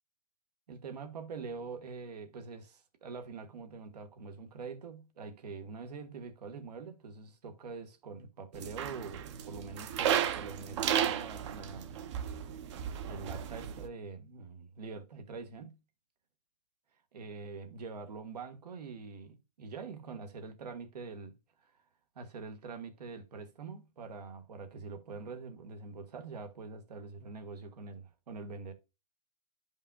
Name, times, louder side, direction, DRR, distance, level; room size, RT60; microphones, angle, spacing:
voice 1, 0.7-12.0 12.4-12.6 13.0-15.8 17.1-21.7 22.1-28.7, right 4 dB, 80° right, 1.5 m, -44 dB
sound 1, 8.5-13.9, right 9 dB, 45° right, 0.8 m, -34 dB
11.5 x 5.4 x 2.3 m
hypercardioid pair, 155°, 20 cm